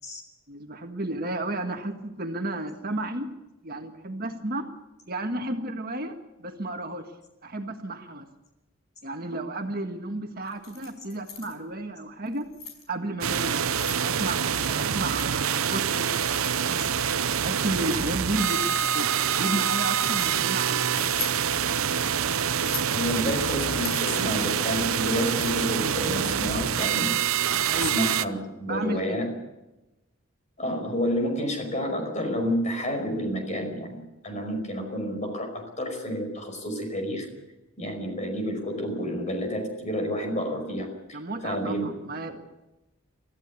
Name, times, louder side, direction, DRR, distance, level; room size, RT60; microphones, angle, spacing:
voice 1, 0.5-3.3 3.6-4.7 5.1-7.0 7.4-8.3 9.0-12.4 12.9-13.6 14.0-16.9 17.4-19.0 19.3-20.9 27.7-27.9 28.6-29.3 41.1-42.3, right 1 dB, 45° right, 4 dB, 1.7 m, -32 dB
Keys jangling, 10.5-11.5 12.3-12.8 13.5-14.0 14.6-15.3 16.2-17.0 17.5-18.9 19.6-20.3 20.9-21.4 22.5-23.0 23.7-25.8, left 7 dB, 85° left, 5.8 m, -40 dB
sound 1, 13.2-28.3, right 8 dB, 80° right, 0.8 m, -26 dB
voice 2, 22.9-27.2 27.7-29.3 30.6-37.3 37.8-41.9, equal, 30° left, 4 dB, 5.3 m, -30 dB
25.0 x 15.0 x 8.4 m, 0.98 s
head